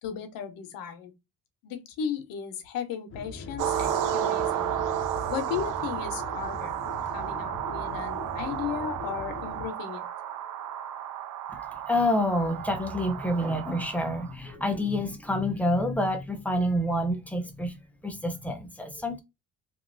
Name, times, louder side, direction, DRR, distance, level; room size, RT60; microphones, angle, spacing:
voice 1, 0.0-1.1 1.6-4.8 5.3-6.8 7.1-10.1, left 8 dB, 80° left, 0.8 m, -35 dB
sound 1, 3.1-9.7, left 3 dB, 40° left, 0.7 m, -41 dB
sound 2, 3.6-14.3, right 10 dB, 70° right, 0.6 m, -32 dB
voice 2, 11.5-17.8 18.0-19.2, left 1 dB, 5° left, 0.6 m, -28 dB
3.0 x 2.5 x 2.5 m
cardioid pair, 125°, 34 cm